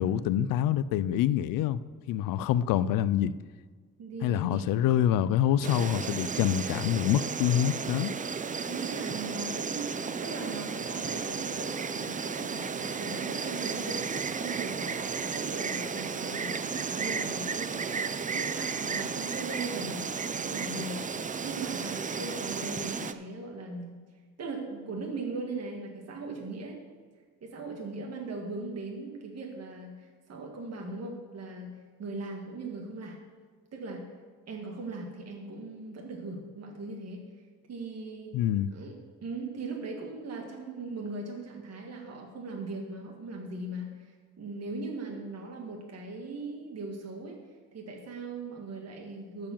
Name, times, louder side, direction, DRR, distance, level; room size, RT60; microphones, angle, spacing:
voice 1, 0.0-1.8 2.1-3.3 4.2-8.1 38.3-38.7, left 11 dB, 90° left, 0.5 m, -26 dB
voice 2, 4.0-4.9 8.6-21.0 21.4-24.0 24.4-26.8 27.4-31.7 32.0-33.2 33.7-34.0 34.5-37.2 37.7-38.3 38.7-47.4 47.7-49.5, right 3 dB, 50° right, 1.8 m, -39 dB
Insect, 5.6-23.1, right 5 dB, 25° right, 0.5 m, -34 dB
12.0 x 4.8 x 7.2 m
cardioid pair, 85°, 32 cm